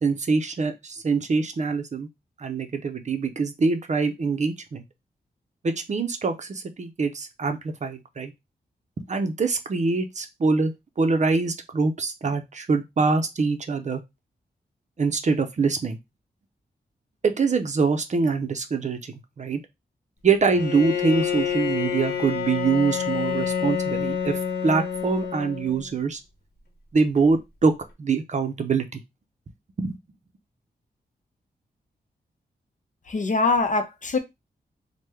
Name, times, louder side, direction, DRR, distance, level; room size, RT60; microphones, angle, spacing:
voice 1, 0.0-2.1 2.4-4.8 5.6-8.3 9.1-14.0 15.0-16.0 17.2-19.6 20.2-26.2 26.9-27.7 28.0-29.0 29.8-30.0, right 4 dB, 45° right, 0.5 m, -24 dB
Bowed string instrument, 20.5-25.9, left 8 dB, 65° left, 0.9 m, -28 dB
voice 2, 33.1-34.2, left 3 dB, 50° left, 0.6 m, -23 dB
3.0 x 2.1 x 3.4 m
wide cardioid pair, 85°, 17 cm